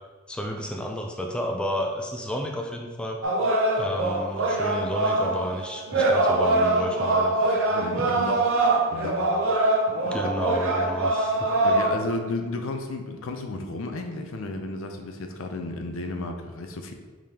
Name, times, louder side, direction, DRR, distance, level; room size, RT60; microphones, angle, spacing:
voice 1, 0.3-3.2 3.8-7.3 10.1-11.5, equal, 5° left, 1 dB, 0.3 m, -31 dB
sound 1, 3.2-11.9, right 2 dB, 65° right, 0.7 m, -23 dB
voice 2, 7.7-9.4 10.0-10.2 11.6-16.9, left 2 dB, 75° left, 5 dB, 0.5 m, -33 dB
4.9 x 3.7 x 2.8 m, 1.4 s
head